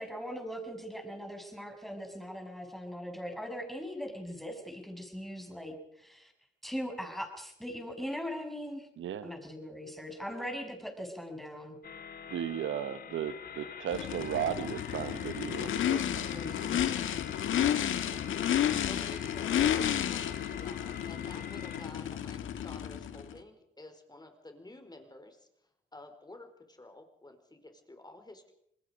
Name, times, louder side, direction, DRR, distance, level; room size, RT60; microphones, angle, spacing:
voice 1, 0.0-6.3 6.6-8.9 9.2-11.8 16.3-16.8, equal, ahead, 4 dB, 6.4 m, -40 dB
voice 2, 9.0-9.3 12.3-16.3, right 9 dB, 80° right, 13 dB, 1.1 m, -35 dB
sound 1, 11.8-21.9, left 7 dB, 50° left, 1.8 m, -47 dB
Race car auto racing / Idling / Accelerating revving vroom, 13.9-23.3, left 10 dB, 80° left, 1.6 m, -31 dB
voice 3, 18.8-25.5 25.9-28.5, left 2 dB, 20° left, 6 dB, 4.6 m, -51 dB
27.5 x 20.5 x 5.2 m, 0.73 s
cardioid pair, 60°, 20 cm